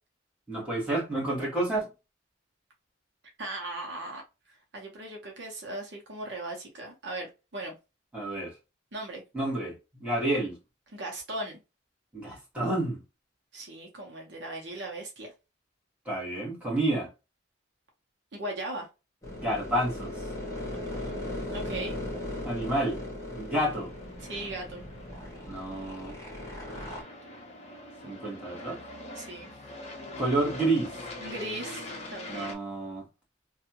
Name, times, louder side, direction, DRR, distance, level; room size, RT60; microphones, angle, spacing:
voice 1, 0.5-1.9 8.1-8.5 9.3-10.6 12.1-13.0 16.0-17.1 19.4-20.2 22.4-23.0 23.3-23.9 25.5-26.1 28.0-28.8 30.2-30.9 32.3-33.1, right 1 dB, 5° right, 1.3 m, -29 dB
voice 2, 3.4-4.2 4.5-7.7 8.9-9.2 10.9-11.6 13.5-15.3 18.3-18.9 21.5-22.0 24.2-24.9 29.1-29.5 31.2-32.5, right 1 dB, 60° right, 0.9 m, -38 dB
sound 1, 19.2-27.0, left 1 dB, 15° left, 1.1 m, -38 dB
Aircraft, 23.3-32.5, left 1 dB, 35° left, 0.6 m, -44 dB
2.7 x 2.3 x 2.7 m
head